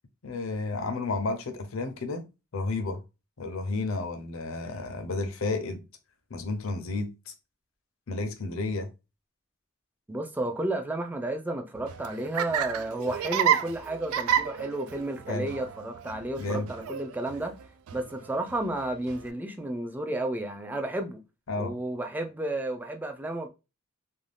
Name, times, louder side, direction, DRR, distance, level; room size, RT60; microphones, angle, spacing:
voice 1, 0.2-2.2 2.5-3.0 3.4-5.8 6.3-7.3 8.1-8.9 15.3-15.5 16.4-16.7 21.5-21.7, left 3 dB, 65° left, 0.6 m, -31 dB
voice 2, 10.1-17.6 17.9-21.2 21.6-23.5, right 1 dB, 10° right, 0.4 m, -32 dB
Laughter, 11.8-19.3, right 9 dB, 80° right, 0.3 m, -31 dB
2.5 x 2.2 x 3.3 m
head